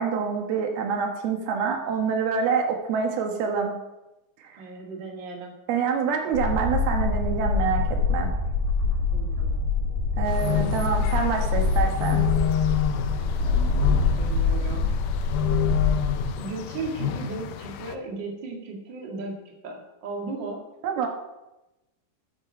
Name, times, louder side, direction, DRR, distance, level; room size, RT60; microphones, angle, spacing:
voice 1, 0.0-3.8 4.4-4.6 5.7-8.3 10.2-12.2 20.8-21.1, right 6 dB, 85° right, 3 dB, 3.3 m, -26 dB
voice 2, 4.6-5.5 9.1-9.6 14.2-14.9 16.4-20.6, right 3 dB, 35° right, 0 dB, 2.2 m, -36 dB
sound 1, 6.3-16.3, left 4 dB, 65° right, 4.6 m, -25 dB
sound 2, 10.3-17.9, left 10 dB, 75° left, 1.9 m, -29 dB
9.3 x 9.2 x 6.3 m, 0.96 s
omnidirectional pair, 4.3 m